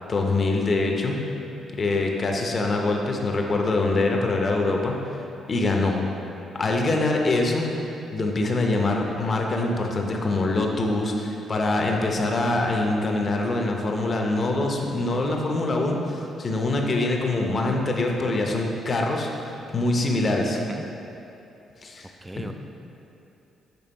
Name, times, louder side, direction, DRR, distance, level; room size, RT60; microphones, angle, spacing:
voice 1, 0.1-1.2 1.7-5.2 5.5-6.0 6.5-7.7 8.1-20.6 21.8-22.1, left 2 dB, 40° left, 1 dB, 0.7 m, -24 dB
voice 2, 22.2-22.5, right 1 dB, 15° right, 6 dB, 0.4 m, -34 dB
6.9 x 3.3 x 4.4 m, 2.9 s
cardioid pair, 90°, 0 cm